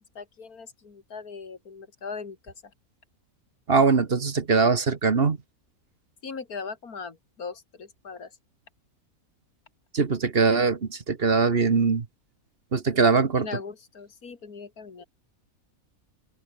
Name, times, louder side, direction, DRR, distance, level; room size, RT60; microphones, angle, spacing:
voice 1, 0.1-2.7 6.2-8.4 13.4-15.0, left 5 dB, 85° left, 2.8 m, -39 dB
voice 2, 3.7-5.4 9.9-12.1 12.7-13.5, right 4 dB, 45° right, 1.5 m, -22 dB
omnidirectional pair, 1.5 m